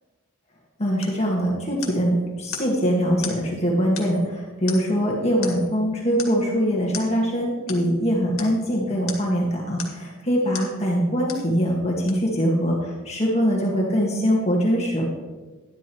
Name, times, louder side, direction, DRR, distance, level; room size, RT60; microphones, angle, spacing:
voice 1, 0.8-15.0, equal, 30° left, -2 dB, 1.7 m, -23 dB
sound 1, 1.0-1.2 1.8-2.1 2.5-2.7 3.2-3.4 4.0-4.3 4.7-5.0 5.4-5.7 6.2-6.4 6.9-7.1 7.7-7.8 8.4-8.6 9.1-9.3 9.8-10.1 10.5-10.7 11.3-11.5 12.1-12.2, left 7 dB, 80° left, 1.9 m, -36 dB
11.5 x 11.5 x 3.1 m, 1.3 s
head